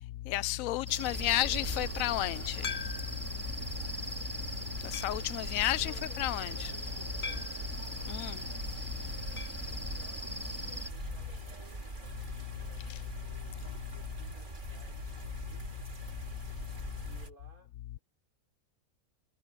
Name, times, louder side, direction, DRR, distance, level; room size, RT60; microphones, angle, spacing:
voice 1, 0.3-2.6 4.8-6.7 8.1-8.4, left 16 dB, 75° left, 1.0 m, -32 dB
sound 1, 0.9-10.9, equal, 10° right, 3.6 m, -42 dB
sound 2, 1.1-17.3, right 2 dB, 35° right, 2.6 m, -42 dB
voice 2, 1.1-2.4 5.8-7.7 9.1-11.8 12.6-13.5 13.9-15.8 17.0-18.0, right 3 dB, 90° right, 6.1 m, -59 dB
sound 3, 2.6-3.3 3.9-4.0 4.9-5.3 7.2-7.7 9.4-9.7 9.9-10.0 10.3-10.4 12.4-12.5, left 5 dB, 40° left, 1.1 m, -41 dB
omnidirectional pair, 1.5 m